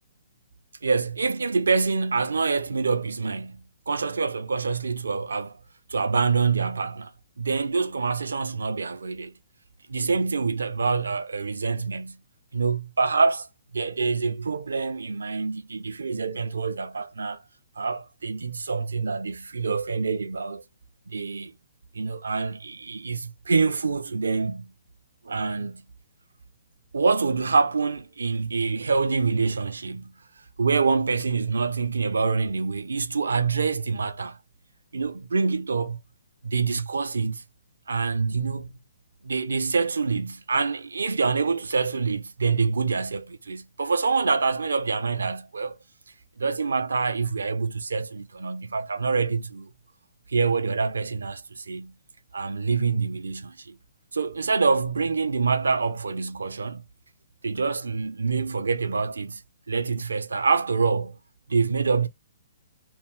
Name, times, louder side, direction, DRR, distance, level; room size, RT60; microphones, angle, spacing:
voice 1, 0.8-5.6 5.9-7.1 7.4-9.3 9.9-12.2 12.5-13.5 13.7-17.4 17.8-20.6 21.1-21.6 21.9-24.7 25.2-25.8 26.9-30.1 30.6-34.4 34.9-36.0 36.4-37.4 37.9-38.8 39.2-45.8 46.4-49.7 50.3-51.9 52.3-53.8 54.1-56.8 57.4-59.4 59.7-61.2 61.5-62.1, right 4 dB, 70° right, 0.7 m, -26 dB
4.3 x 2.9 x 3.6 m
figure-of-eight pair, 125°, 0 cm